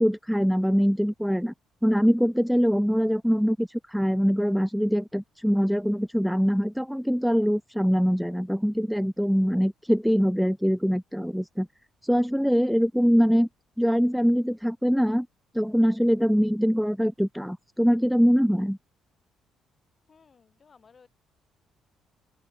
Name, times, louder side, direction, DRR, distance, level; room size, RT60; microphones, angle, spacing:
voice 1, 0.0-1.5 1.8-11.7 12.0-13.5 13.8-15.3 15.5-18.8, equal, ahead, 0.4 m, -23 dB
voice 2, 20.1-21.1, left 5 dB, 25° left, 6.7 m, -57 dB
open air
cardioid pair, 160°, 0 cm